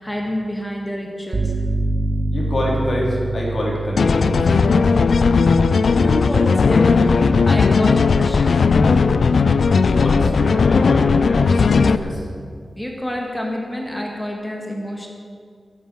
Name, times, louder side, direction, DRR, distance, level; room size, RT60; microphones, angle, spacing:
voice 1, 0.0-1.5 5.9-8.5 12.8-15.1, left 1 dB, 10° left, 0 dB, 2.1 m, -27 dB
sound 1, 1.3-9.0, right 2 dB, 35° right, 1.7 m, -27 dB
voice 2, 2.3-4.5 9.7-12.2, left 1 dB, 50° left, -3 dB, 3.9 m, -26 dB
sound 2, 4.0-12.0, left 5 dB, 70° left, 0.5 m, -16 dB
13.0 x 11.5 x 7.6 m, 2.2 s
wide cardioid pair, 130°, 0 cm